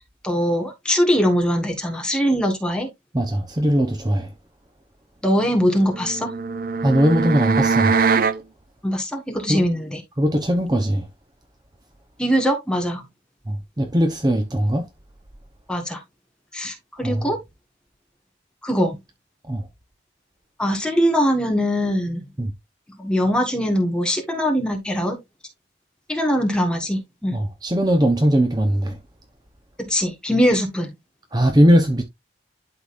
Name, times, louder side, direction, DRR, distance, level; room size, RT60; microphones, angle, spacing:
voice 1, 0.2-2.9 5.2-6.3 8.8-10.0 12.2-13.0 15.7-16.0 16.5-17.4 18.6-18.9 20.6-22.3 23.0-25.2 26.1-27.4 29.8-30.9, equal, 5° left, 1.6 m, -22 dB
voice 2, 3.1-4.3 6.8-8.0 9.5-9.6 10.2-11.1 13.5-14.9 17.0-17.3 19.5-19.7 22.4-22.5 27.3-29.0 31.3-32.0, equal, 20° right, 0.8 m, -20 dB
sound 1, 5.8-8.4, right 5 dB, 45° right, 0.5 m, -22 dB
12.0 x 4.0 x 2.6 m
head